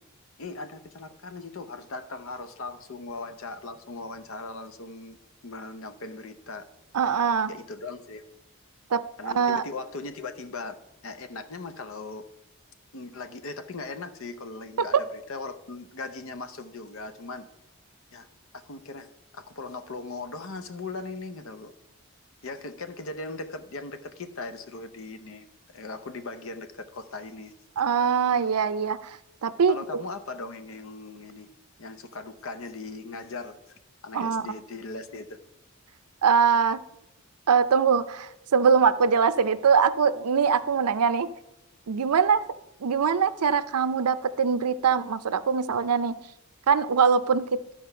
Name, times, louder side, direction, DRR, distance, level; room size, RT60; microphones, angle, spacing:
voice 1, 0.4-5.2 5.4-6.7 7.5-8.3 9.2-10.8 11.0-12.3 12.9-17.5 18.1-18.3 18.5-19.1 19.3-21.7 22.4-25.5 25.7-27.5 29.7-31.5 31.8-33.6 34.0-35.4, left 3 dB, 65° left, 10 dB, 0.7 m, -39 dB
voice 2, 6.9-7.5 8.9-9.6 27.8-30.0 34.1-34.5 36.2-36.8 37.5-41.3 41.9-42.4 42.8-46.2 46.7-47.6, right 6 dB, 90° right, 14 dB, 0.5 m, -23 dB
11.5 x 4.5 x 5.6 m, 0.88 s
head